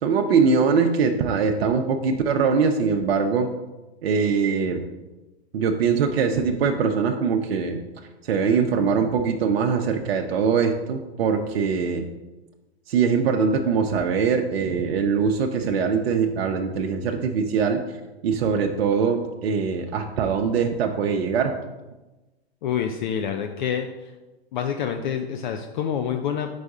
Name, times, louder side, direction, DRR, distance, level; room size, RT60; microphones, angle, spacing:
voice 1, 0.0-3.5 4.0-4.8 5.5-7.8 8.2-12.0 12.9-17.8 18.2-21.5, right 5 dB, 60° right, 3 dB, 0.6 m, -22 dB
voice 2, 22.6-23.9 24.5-26.5, left 8 dB, 45° left, 6 dB, 0.5 m, -27 dB
4.7 x 4.2 x 4.8 m, 1.1 s
hypercardioid pair, 125°, 33 cm